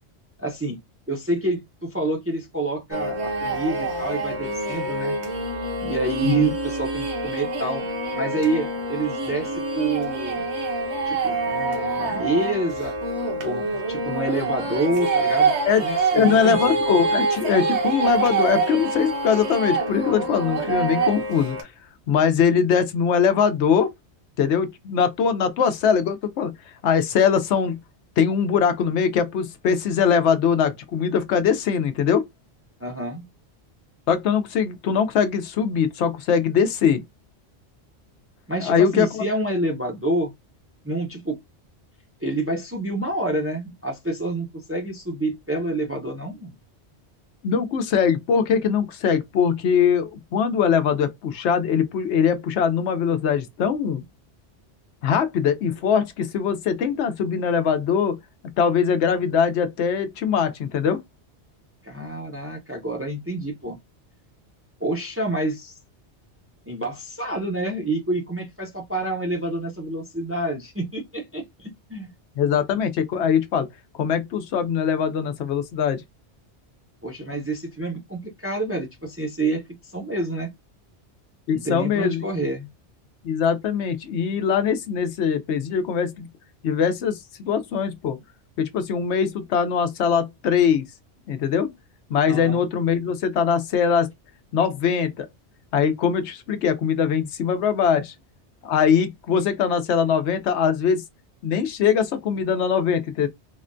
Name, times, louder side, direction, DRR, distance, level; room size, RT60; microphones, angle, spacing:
voice 1, 0.4-0.8 1.1-5.2 5.8-7.9 8.1-10.4 11.0-12.9 13.4-15.5 15.8-16.8 32.8-33.2 38.5-40.3 40.8-41.4 42.2-46.5 61.8-63.8 64.8-65.8 66.7-72.1 77.0-79.6 79.9-80.5 81.5-82.7 92.3-92.6, right 2 dB, 20° right, 0.4 m, -28 dB
sound 1, 2.9-21.6, right 3 dB, 80° right, 1.2 m, -26 dB
voice 2, 16.1-21.6 22.1-23.9 24.4-26.5 26.8-27.8 28.2-32.2 34.1-37.0 38.6-39.2 47.4-54.0 55.0-58.2 58.6-61.0 72.4-73.7 73.9-76.0 81.5-82.2 83.2-86.3 86.6-88.2 88.6-90.8 91.3-91.7 92.1-94.1 94.5-95.3 95.7-98.1 98.6-101.0 101.4-103.3, left 7 dB, 85° left, 0.9 m, -22 dB
3.5 x 2.2 x 2.5 m
omnidirectional pair, 1.1 m